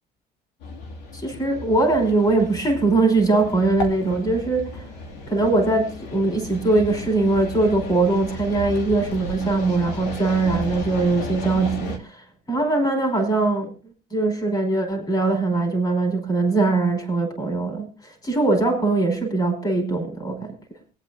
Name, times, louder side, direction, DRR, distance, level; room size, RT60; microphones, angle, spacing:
sound 1, 0.6-12.0, left 2 dB, 90° left, 2.6 m, -34 dB
voice 1, 1.1-4.9 5.3-13.7 14.1-20.5, right 3 dB, 25° left, 4.9 m, -21 dB
24.0 x 8.9 x 2.7 m
cardioid pair, 110°, 17 cm